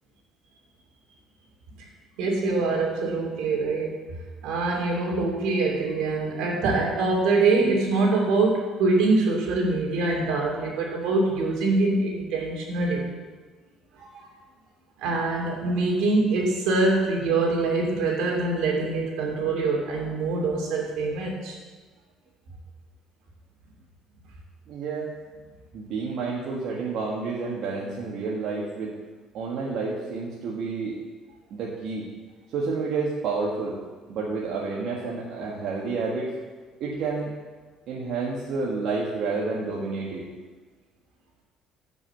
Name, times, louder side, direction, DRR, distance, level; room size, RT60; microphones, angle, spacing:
voice 1, 2.2-3.9 4.4-13.1 14.0-14.3 15.0-21.5, right 3 dB, 80° right, -1 dB, 2.7 m, -24 dB
voice 2, 24.7-25.1 25.7-28.9 29.3-31.0 31.5-32.1 32.5-33.8 34.1-36.3 36.8-37.3 37.9-40.2, right 4 dB, 65° right, -5 dB, 1.6 m, -29 dB
7.4 x 6.1 x 7.9 m, 1.3 s
cardioid pair, 125°, 0 cm